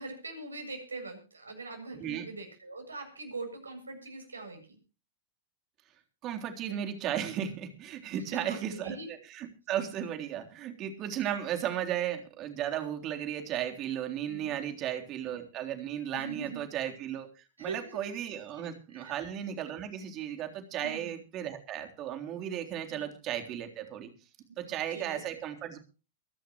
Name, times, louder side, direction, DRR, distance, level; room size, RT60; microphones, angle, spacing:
voice 1, 0.0-4.8 8.3-9.1 14.3-14.5 16.1-16.6 17.6-18.1 18.5-19.2 20.8-21.1 22.9-23.1 24.7-25.2, right 3 dB, 80° right, 4 dB, 7.5 m, -42 dB
voice 2, 1.9-2.3 6.2-9.0 9.3-24.1 24.6-25.8, right 10 dB, 35° right, 5 dB, 3.6 m, -35 dB
24.0 x 12.0 x 3.1 m, 0.34 s
figure-of-eight pair, 90°, 0 cm